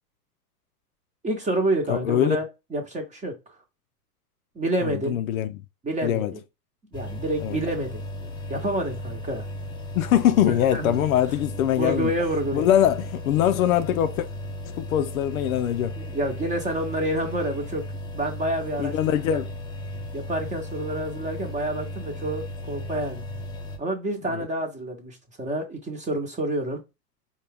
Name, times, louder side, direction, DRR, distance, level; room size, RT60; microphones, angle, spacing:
voice 1, 1.2-2.4 2.7-3.3 4.5-5.2 5.8-6.4 6.9-9.5 10.5-11.0 11.6-12.7 15.9-17.8 18.1-19.4 20.1-23.2 23.8-26.8, right 1 dB, 15° right, 0.9 m, -28 dB
voice 2, 1.9-2.4 4.8-5.6 6.0-6.3 7.4-7.6 9.9-12.1 12.5-14.3 14.6-16.0 18.8-19.5 24.3-24.4, left 11 dB, 60° left, 0.5 m, -23 dB
sound 1, 6.9-23.8, left 1 dB, 10° left, 0.6 m, -36 dB
4.5 x 2.4 x 3.4 m
hypercardioid pair, 100°, 48 cm